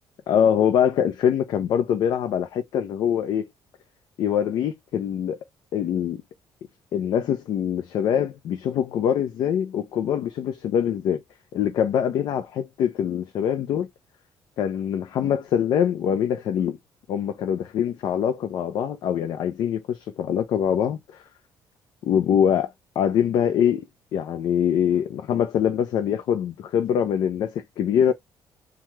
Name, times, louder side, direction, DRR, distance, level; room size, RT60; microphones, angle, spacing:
voice 1, 0.3-3.5 4.2-5.4 5.7-6.2 6.9-11.2 11.5-13.9 14.6-16.8 17.1-21.0 22.0-23.8 24.1-28.1, left 9 dB, 60° left, 0.4 m, -23 dB
2.8 x 2.3 x 3.1 m
cardioid pair, 175°, 8 cm